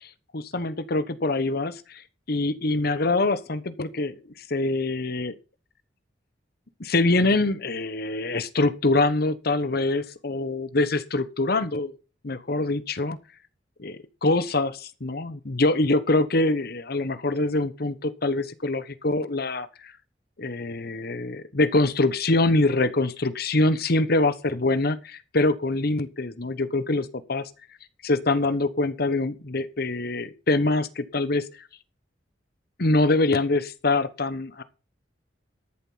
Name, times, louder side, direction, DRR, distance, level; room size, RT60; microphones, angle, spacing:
voice 1, 0.0-2.0 2.3-4.2 4.5-5.3 6.8-11.9 12.2-13.2 13.8-19.9 20.4-27.4 28.0-31.5 32.8-34.6, left 2 dB, 60° left, 13 dB, 1.1 m, -24 dB
13.5 x 7.4 x 5.7 m, 0.33 s
head